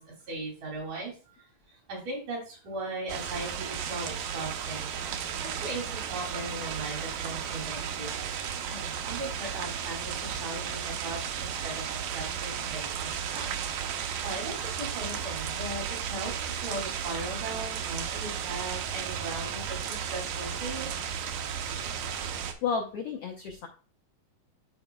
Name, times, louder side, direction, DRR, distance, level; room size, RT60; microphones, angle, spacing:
voice 1, 0.0-1.4 1.9-4.9 5.4-8.1 8.7-13.5 14.2-20.9, right 2 dB, 70° right, -3 dB, 4.3 m, -38 dB
sound 1, 3.1-22.5, right 8 dB, 85° right, 2.4 m, -34 dB
voice 2, 22.6-23.7, left 6 dB, 85° left, 2 dB, 1.3 m, -31 dB
11.5 x 4.6 x 2.2 m, 0.37 s
omnidirectional pair, 3.8 m